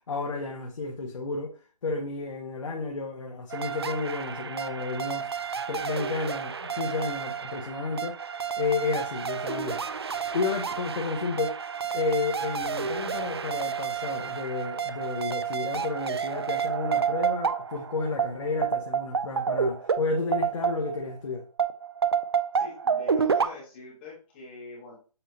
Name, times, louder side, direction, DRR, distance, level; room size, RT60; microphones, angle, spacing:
voice 1, 0.1-1.6 1.8-5.3 5.7-9.8 10.3-11.6 11.9-21.4, left 3 dB, 55° left, 0.9 m, -31 dB
sound 1, 3.5-21.1 21.6-23.5, right 6 dB, 40° right, 0.4 m, -30 dB
voice 2, 22.5-25.0, left 3 dB, 15° left, 1.4 m, -44 dB
7.0 x 2.7 x 2.7 m
hypercardioid pair, 170°, 20 cm